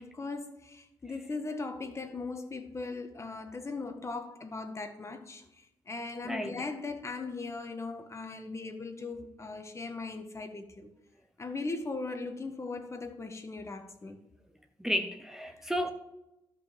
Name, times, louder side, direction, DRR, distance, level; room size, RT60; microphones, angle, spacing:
voice 1, 0.0-5.4 5.9-10.9 11.4-14.2, left 3 dB, 30° left, 1.6 m, -39 dB
voice 2, 6.2-6.6 14.8-15.9, equal, 5° right, 1.0 m, -32 dB
12.0 x 5.6 x 7.8 m
cardioid pair, 65°, 9 cm